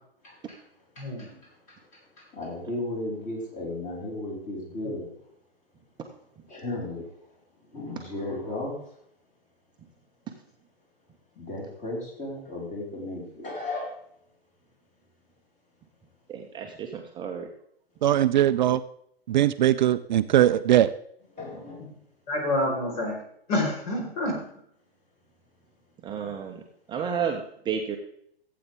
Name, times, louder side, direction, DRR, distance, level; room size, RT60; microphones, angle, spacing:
voice 1, 0.2-0.7 0.9-5.1 6.5-7.3 7.6-9.0 11.3-14.0 21.3-21.8 26.2-26.3, left 2 dB, 25° left, -2 dB, 4.7 m, -35 dB
voice 2, 1.0-1.3 22.3-23.1 23.5-24.4, left 1 dB, 50° left, 1 dB, 4.5 m, -27 dB
voice 3, 16.3-17.5 26.0-26.6 26.9-28.0, right 7 dB, 15° right, 2 dB, 0.8 m, -31 dB
voice 4, 18.0-18.8 19.3-20.9, right 12 dB, 50° right, 12 dB, 0.5 m, -20 dB
15.5 x 8.5 x 3.5 m, 0.69 s
hypercardioid pair, 125°, 31 cm